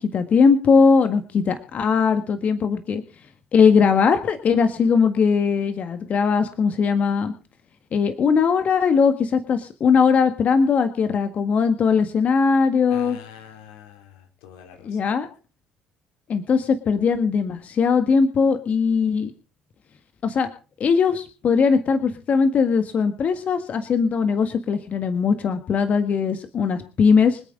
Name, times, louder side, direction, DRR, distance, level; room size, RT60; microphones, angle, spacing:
voice 1, 0.0-3.0 3.5-7.3 7.9-13.2 14.8-15.3 16.3-19.3 20.2-20.5 20.8-27.4, left 5 dB, 50° left, 9 dB, 1.6 m, -20 dB
voice 2, 12.9-15.1, left 9 dB, 75° left, 5 dB, 2.6 m, -45 dB
26.0 x 8.8 x 3.8 m, 0.36 s
hypercardioid pair, 50°, 3 cm